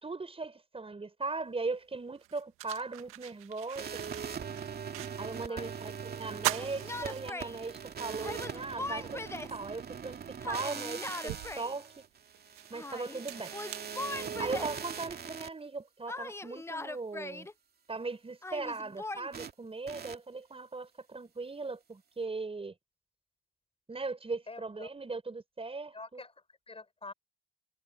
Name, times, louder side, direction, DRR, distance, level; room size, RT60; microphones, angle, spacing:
voice 1, 0.0-4.0 5.2-9.2 9.5-12.1 12.7-13.5 14.4-17.5 17.9-22.7 23.9-26.2, right 3 dB, 25° right, 5.7 m, -39 dB
sound 1, 1.5-1.6 2.1-5.5 5.8-5.9 6.3-7.8 8.3-8.4 9.8-9.9 10.5-14.7, right 16 dB, 90° right, 1.8 m, -41 dB
sound 2, 3.8-15.5 19.3-19.5 19.9-20.2, right 7 dB, 50° right, 2.4 m, -41 dB
voice 2, 5.5-5.9 13.2-13.5 24.5-24.9 25.9-27.1, left 3 dB, 25° left, 7.3 m, -48 dB
Yell, 6.6-7.6 8.2-9.6 10.4-11.7 12.7-13.2 13.5-14.8 16.1-17.5 18.4-19.3, left 2 dB, 10° left, 0.6 m, -40 dB
supercardioid pair, 65°, 21 cm